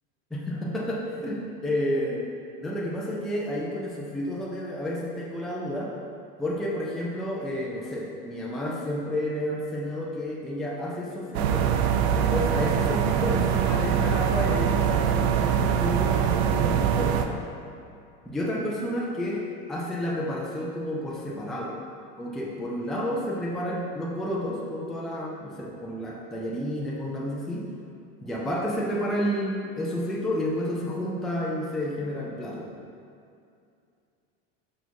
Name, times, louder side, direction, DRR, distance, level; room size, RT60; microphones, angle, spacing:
voice 1, 0.3-2.3 2.6-5.9 6.4-11.7 12.2-17.4 18.3-19.4 19.7-21.8 22.2-27.7 28.2-32.8, equal, ahead, -4 dB, 0.4 m, -30 dB
sound 1, 11.3-17.3, right 8 dB, 90° right, 0.5 m, -23 dB
5.2 x 4.1 x 4.6 m, 2.5 s
cardioid pair, 160°, 32 cm